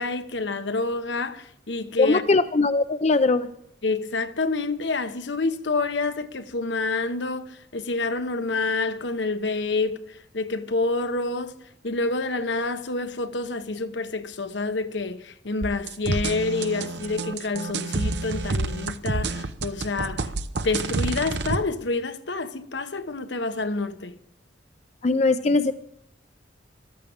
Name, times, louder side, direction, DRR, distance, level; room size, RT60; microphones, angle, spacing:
voice 1, 0.0-2.2 3.8-11.5 11.8-20.3 20.6-24.1, left 3 dB, 70° left, 1.0 m, -28 dB
voice 2, 2.0-3.5 25.0-25.7, left 3 dB, 35° left, 0.5 m, -20 dB
sound 1, 15.6-21.6, right 3 dB, 65° right, 0.8 m, -28 dB
14.0 x 12.5 x 7.2 m
head